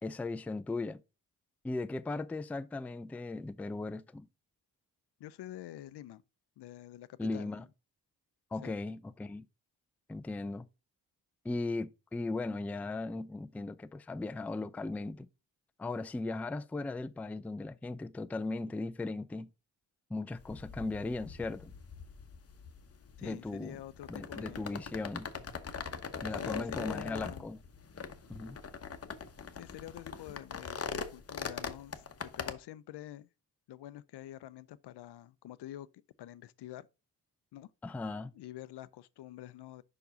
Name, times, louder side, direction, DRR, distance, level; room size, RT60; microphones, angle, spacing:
voice 1, 0.0-1.0 1.6-4.3 7.2-7.6 8.5-9.5 10.1-10.7 11.4-15.3 15.8-19.5 20.1-21.7 23.2-23.8 24.1-25.3 26.2-27.6 28.3-28.6 37.8-38.3, left 3 dB, 5° left, 0.3 m, -37 dB
voice 2, 5.2-6.2 6.6-7.7 8.6-8.8 23.2-24.9 26.4-27.4 29.5-33.3 33.7-35.9 36.2-36.9 37.5-37.7 38.3-39.8, left 13 dB, 70° left, 0.6 m, -47 dB
sound 1, 20.3-32.5, left 5 dB, 35° left, 0.9 m, -42 dB
5.3 x 4.7 x 4.9 m
supercardioid pair, 55°, 42 cm